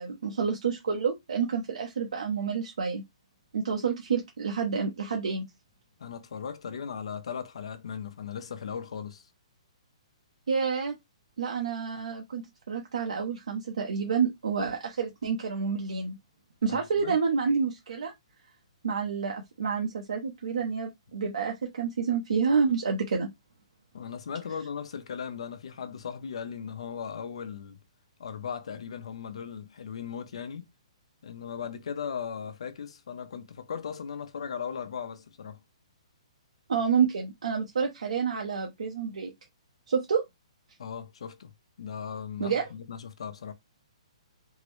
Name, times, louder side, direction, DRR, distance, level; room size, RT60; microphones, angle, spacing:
voice 1, 0.0-3.0 3.5-5.5 10.5-11.0 11.4-12.4 12.7-16.2 16.6-18.1 18.8-23.3 36.7-39.3 39.9-40.2 42.4-42.6, right 6 dB, 85° right, 0.7 m, -28 dB
voice 2, 6.0-9.3 16.7-17.2 23.9-27.8 28.2-30.7 31.2-35.6 40.8-41.5 41.8-43.5, left 7 dB, 65° left, 0.7 m, -37 dB
3.6 x 2.0 x 3.1 m
hypercardioid pair, 170°, 3 cm